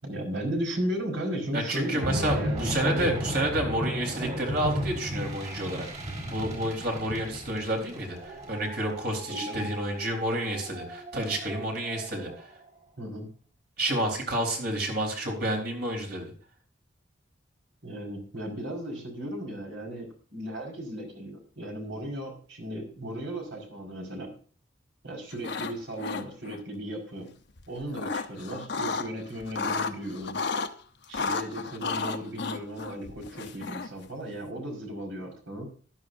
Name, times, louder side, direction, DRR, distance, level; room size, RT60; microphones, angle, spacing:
voice 1, 0.0-3.1 9.3-9.7 13.0-13.3 17.8-24.3 25.0-27.3 27.7-30.4 31.1-35.7, equal, 70° right, 2 dB, 5.0 m, -35 dB
voice 2, 1.5-5.9 6.3-12.5 13.8-16.3, right 1 dB, 55° right, 2 dB, 4.0 m, -30 dB
sound 1, 1.8-12.4, equal, 35° right, 4.8 m, -35 dB
sound 2, 25.3-25.7 26.0-26.6 27.6-29.1 29.4-30.7 31.1-34.0, left 4 dB, 60° left, 0.9 m, -32 dB
15.0 x 12.0 x 2.6 m, 0.41 s
head